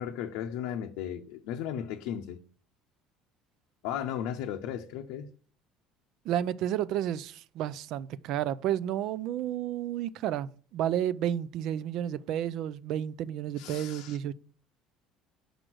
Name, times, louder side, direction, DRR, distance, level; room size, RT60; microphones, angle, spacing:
voice 1, 0.0-2.4 3.8-5.3 13.6-14.2, left 9 dB, 85° left, 0.7 m, -35 dB
voice 2, 6.3-14.3, right 11 dB, 60° right, 0.4 m, -31 dB
6.1 x 5.1 x 6.1 m
cardioid pair, 130°, 0 cm